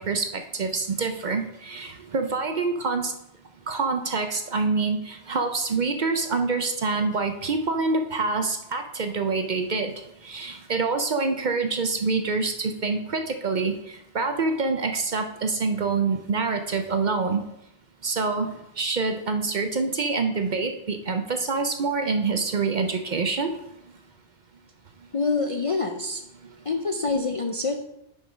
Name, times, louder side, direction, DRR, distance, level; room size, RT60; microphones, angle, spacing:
voice 1, 0.0-3.1 3.7-9.9 10.2-13.7 14.1-17.4 18.0-23.5, right 4 dB, 50° right, 6 dB, 0.6 m, -26 dB
voice 2, 25.1-26.2 26.7-27.8, left 3 dB, 45° left, 4 dB, 0.4 m, -26 dB
6.6 x 5.4 x 5.1 m, 0.84 s
omnidirectional pair, 1.2 m